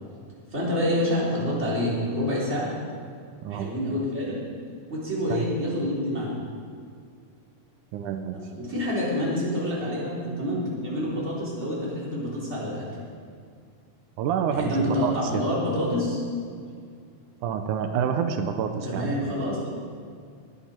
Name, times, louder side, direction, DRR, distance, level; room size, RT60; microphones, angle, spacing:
voice 1, 0.5-2.7 3.5-4.4 4.9-6.3 8.5-12.8 14.5-16.2 18.8-19.6, left 1 dB, 20° right, -6 dB, 3.9 m, -27 dB
voice 2, 3.4-3.7 5.3-5.5 7.9-8.4 14.2-15.4 17.4-19.1, right 7 dB, 90° right, 6 dB, 2.3 m, -28 dB
19.5 x 11.0 x 4.5 m, 2.2 s
omnidirectional pair, 3.6 m